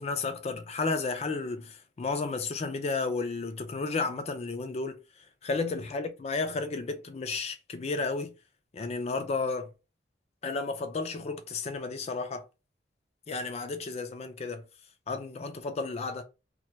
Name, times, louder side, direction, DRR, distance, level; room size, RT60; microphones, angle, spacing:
voice 1, 0.0-5.0 5.4-8.3 8.7-9.7 10.4-12.5 13.3-14.6 15.1-16.2, left 3 dB, 35° left, 0.4 m, -32 dB
2.3 x 2.2 x 2.7 m
head